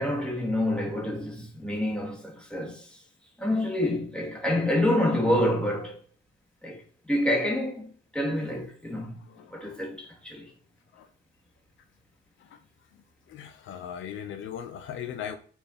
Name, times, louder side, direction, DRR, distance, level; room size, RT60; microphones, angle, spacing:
voice 1, 0.0-2.8 3.4-6.0 6.6-6.8 7.1-7.9 8.1-9.1 9.5-10.5, left 1 dB, 5° left, 2.6 m, -27 dB
voice 2, 8.9-9.8 10.9-11.1 12.4-12.6 13.3-15.4, left 9 dB, 80° left, 1.0 m, -39 dB
7.2 x 4.7 x 5.6 m
cardioid pair, 120°, 20 cm